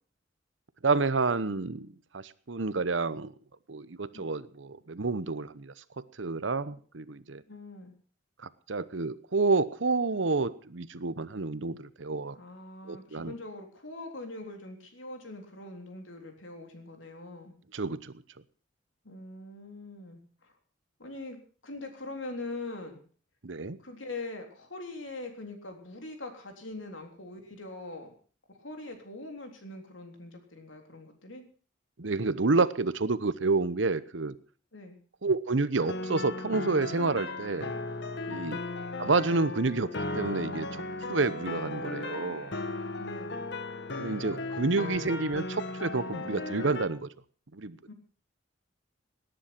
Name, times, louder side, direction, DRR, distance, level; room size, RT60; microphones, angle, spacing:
voice 1, 0.8-3.3 3.7-7.4 8.4-12.4 12.9-13.3 17.7-18.1 23.4-23.8 32.0-34.3 35.2-37.7 38.3-38.6 39.0-39.9 40.1-40.8 41.1-42.5 44.0-47.1 47.5-47.9, right 3 dB, 75° right, 16 dB, 0.9 m, -29 dB
voice 2, 7.5-7.9 12.3-17.5 19.0-20.5 21.0-21.4 21.6-23.0 23.8-28.1 28.6-31.4 34.7-35.0 38.3-38.6 43.0-43.4 47.9-48.0, left 2 dB, 80° left, 4 dB, 3.7 m, -42 dB
sound 1, 35.8-46.9, left 2 dB, 60° left, 1.5 m, -36 dB
18.5 x 10.5 x 5.9 m, 0.42 s
head